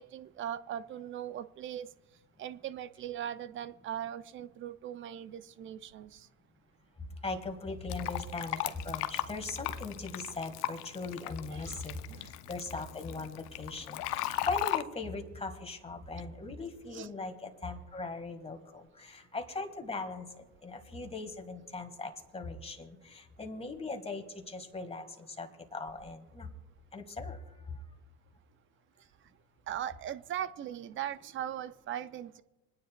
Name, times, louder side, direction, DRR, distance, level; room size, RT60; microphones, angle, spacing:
voice 1, 0.0-1.9 2.4-6.3 11.5-12.3 16.9-17.1 29.7-32.4, right 10 dB, 30° right, 15 dB, 0.4 m, -39 dB
voice 2, 7.2-12.0 12.5-20.3 20.6-26.5 26.9-27.4, left 3 dB, 15° left, 6 dB, 1.6 m, -39 dB
Fill (with liquid), 7.9-14.8, left 15 dB, 85° left, 0.7 m, -37 dB
28.0 x 9.6 x 2.2 m, 1.1 s
hypercardioid pair, 90°, 46 cm